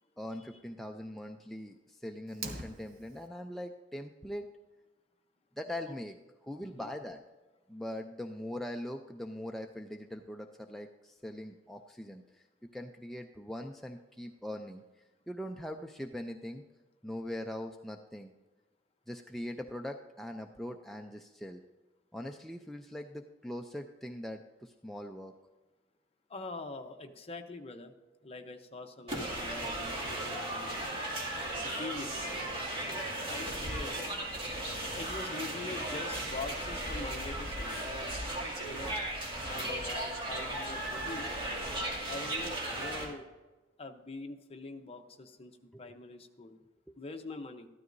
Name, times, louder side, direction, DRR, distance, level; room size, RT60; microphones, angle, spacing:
voice 1, 0.2-4.5 5.6-7.2 7.7-12.5 12.7-14.8 15.3-16.6 17.0-18.3 19.1-21.6 22.1-25.3 45.7-45.9 46.9-47.0, left 1 dB, ahead, 3 dB, 0.4 m, -41 dB
Fire, 2.3-3.3, right 3 dB, 55° right, 1.2 m, -43 dB
voice 2, 26.3-27.9 28.2-30.8 31.5-32.1 32.9-33.9 34.9-37.9 38.6-39.0 39.4-41.4 42.1-43.2 43.8-46.6 47.0-47.7, left 3 dB, 30° left, 6 dB, 0.8 m, -44 dB
sound 1, 29.1-43.0, right 1 dB, 30° right, 2.4 m, -36 dB
13.5 x 12.5 x 2.6 m, 1.2 s
head